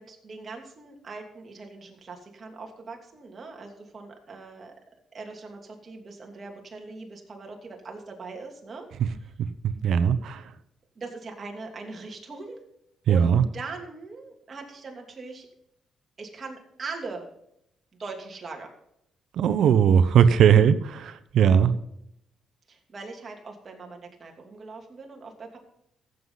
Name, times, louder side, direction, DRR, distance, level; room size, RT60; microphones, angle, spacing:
voice 1, 0.0-4.7 5.1-8.9 9.2-9.3 10.9-12.6 13.1-15.5 16.2-17.3 18.0-18.7 22.7-25.6, right 4 dB, 40° right, 1 dB, 2.9 m, -40 dB
voice 2, 9.6-10.4 13.1-13.4 19.3-21.7, right 8 dB, 75° right, 12 dB, 0.9 m, -19 dB
15.0 x 7.9 x 4.0 m, 0.78 s
cardioid pair, 85°, 0 cm